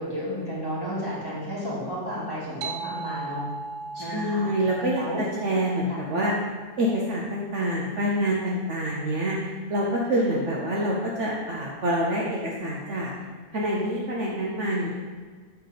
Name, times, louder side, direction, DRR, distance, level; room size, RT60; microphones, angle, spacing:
voice 1, 0.0-3.4 4.0-4.5 5.0-5.2 5.9-6.0, equal, 15° left, -9 dB, 2.0 m, -32 dB
sound 1, 2.6-7.6, right 4 dB, 90° right, 1.2 m, -39 dB
voice 2, 3.9-6.3 6.8-13.1 13.5-14.9, equal, 55° right, -4 dB, 1.0 m, -26 dB
7.4 x 3.9 x 5.0 m, 1.5 s
omnidirectional pair, 1.7 m